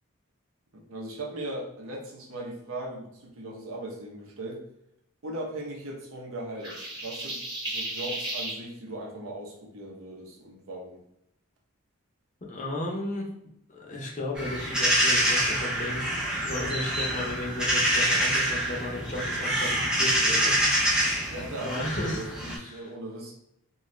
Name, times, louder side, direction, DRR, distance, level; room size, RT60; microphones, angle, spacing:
voice 1, 0.7-4.6 5.2-7.4 7.6-11.0 21.3-23.3, right 1 dB, 70° right, -1 dB, 0.7 m, -38 dB
sound 1, 6.6-8.6, right 1 dB, 20° right, 0.9 m, -34 dB
voice 2, 12.5-13.3 13.7-16.0 16.4-21.3 21.7-22.2 22.6-22.9, left 1 dB, 35° left, -2 dB, 0.6 m, -34 dB
sound 2, 14.4-22.6, equal, 5° right, 0.4 m, -26 dB
2.6 x 2.3 x 3.1 m, 0.76 s
head